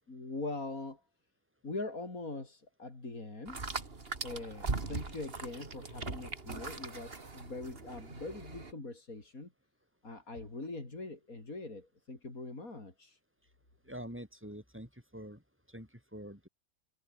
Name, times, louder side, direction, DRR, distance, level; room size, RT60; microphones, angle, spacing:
voice 1, 0.1-1.0 1.6-3.6 4.2-9.5 10.0-13.2, left 2 dB, 75° left, 5.2 m, -42 dB
sound 1, 3.5-8.7, right 3 dB, 45° right, 2.5 m, -40 dB
voice 2, 13.8-15.4 15.7-16.5, equal, 10° right, 7.3 m, -46 dB
omnidirectional pair, 1.5 m